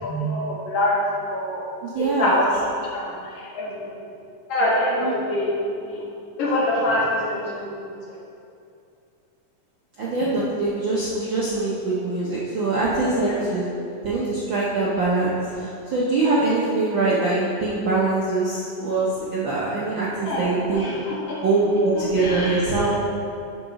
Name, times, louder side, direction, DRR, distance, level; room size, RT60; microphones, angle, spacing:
voice 1, 0.0-1.0 1.3-1.6 1.9-3.9 4.5-6.0 6.4-8.2 13.2-13.4 20.2-21.4 21.9-22.9, left 1 dB, 60° left, -5 dB, 2.3 m, -25 dB
voice 2, 1.8-2.4 5.0-5.1 10.0-13.7 14.0-20.9 21.4-22.9, right 3 dB, 65° right, -6 dB, 1.2 m, -23 dB
8.6 x 4.0 x 6.2 m, 2.5 s
omnidirectional pair, 3.4 m